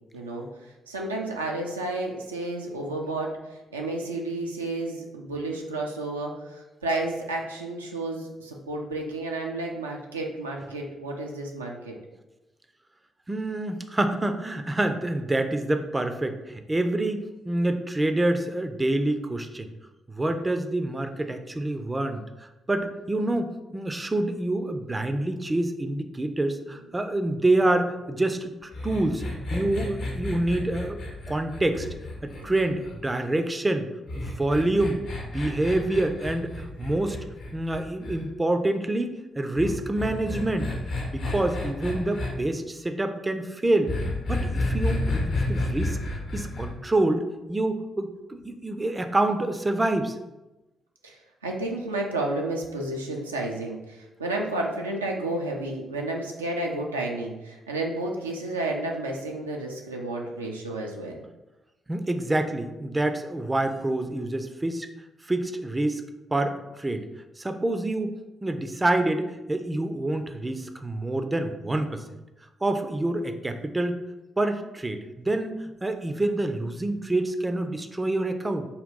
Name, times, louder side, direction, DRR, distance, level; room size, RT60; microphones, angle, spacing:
voice 1, 0.1-3.4 3.7-12.0 51.0-61.2, right 2 dB, 85° right, 0 dB, 0.4 m, -31 dB
voice 2, 13.3-19.7 20.1-29.2 29.5-31.0 31.3-31.9 32.2-33.9 34.2-37.2 37.5-40.7 41.1-43.9 44.2-46.0 46.3-50.2 61.9-64.9 65.2-66.0 66.3-67.0 67.4-68.1 68.4-72.0 72.6-74.0 74.4-78.7, right 2 dB, 20° right, 7 dB, 0.4 m, -27 dB
sound 1, 28.7-33.1 34.1-38.2 39.6-42.3 43.9-46.7, left 2 dB, 60° left, 0.7 m, -31 dB
3.7 x 2.2 x 3.7 m, 1.0 s
figure-of-eight pair, 40°, 0 cm